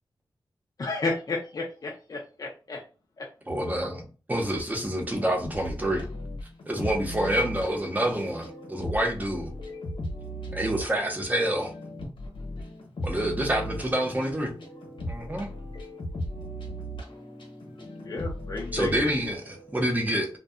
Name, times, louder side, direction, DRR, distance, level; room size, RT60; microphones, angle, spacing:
voice 1, 0.8-2.8 3.2-3.3 18.0-18.9, left 3 dB, 45° left, 0.4 m, -32 dB
voice 2, 3.5-6.0 6.7-9.5 10.5-11.7 13.0-14.5 15.1-15.5 18.7-20.3, right 1 dB, 20° right, 0.6 m, -27 dB
voice 3, 5.1-5.5 6.2-6.4 6.8-8.1 8.4-8.9 9.3-13.8 14.4-19.0 19.6-19.8, equal, 90° left, 0.9 m, -37 dB
2.6 x 2.1 x 2.4 m
wide cardioid pair, 125°, 8 cm